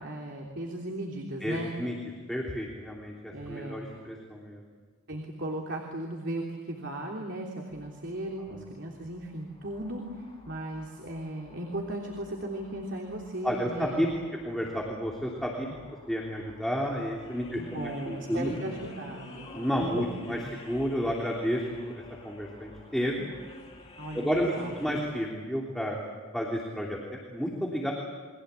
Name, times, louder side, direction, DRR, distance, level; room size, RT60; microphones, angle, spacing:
voice 1, 0.0-1.7 3.3-4.0 5.1-14.2 17.5-19.5 19.8-19.9 20.3-20.5 24.0-25.0, right 1 dB, 55° right, 0 dB, 3.3 m, -37 dB
voice 2, 1.4-1.9 2.3-4.6 8.5-8.6 13.4-14.1 14.4-15.7 16.1-18.6 19.5-23.3 24.1-25.9 26.3-27.9, equal, ahead, -3 dB, 3.2 m, -31 dB
sound 1, 7.7-25.0, left 1 dB, 30° left, 3.9 m, -50 dB
30.0 x 23.5 x 8.3 m, 1.4 s
head